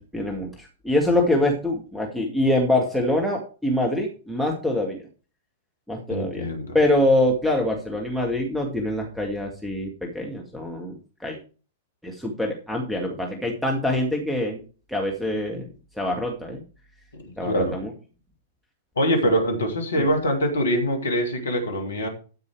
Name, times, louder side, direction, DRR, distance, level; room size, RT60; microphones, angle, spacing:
voice 1, 0.0-5.1 5.9-6.5 6.7-11.4 12.0-14.6 14.9-15.7 16.0-16.6 17.4-17.9 20.0-20.1, left 1 dB, ahead, 1 dB, 2.0 m, -24 dB
voice 2, 6.1-6.8 17.1-17.8 19.0-22.1, equal, 70° left, 5 dB, 2.7 m, -24 dB
13.5 x 5.4 x 4.7 m, 0.36 s
figure-of-eight pair, 100°, 0 cm